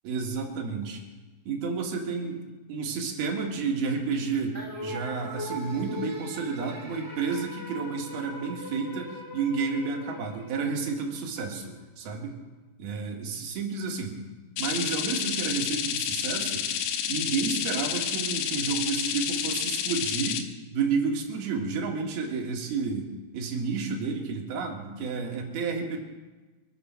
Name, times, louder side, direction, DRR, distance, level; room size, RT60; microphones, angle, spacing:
voice 1, 0.0-1.0 1.5-2.4 2.7-12.4 12.8-14.2 14.6-16.7 17.1-20.4 20.7-26.0, right 5 dB, 60° right, 0 dB, 3.4 m, -31 dB
sound 1, 4.5-11.1, left 1 dB, 10° right, 0.9 m, -40 dB
sound 2, 14.6-20.4, left 9 dB, 75° left, 2.5 m, -30 dB
25.0 x 8.6 x 6.0 m, 1.2 s
omnidirectional pair, 5.7 m